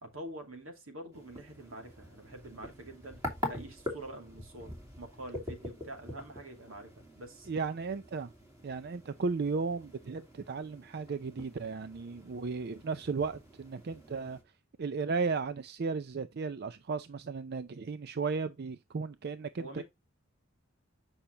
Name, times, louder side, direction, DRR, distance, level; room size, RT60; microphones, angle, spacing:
voice 1, 0.0-3.2 3.5-7.5 19.6-19.8, right 1 dB, 80° right, 2.6 m, -46 dB
sound 1, 1.1-14.4, left 2 dB, 15° right, 2.8 m, -45 dB
voice 2, 7.5-8.3 8.6-14.4 14.8-19.8, right 4 dB, 50° right, 0.5 m, -35 dB
8.8 x 5.7 x 2.8 m
head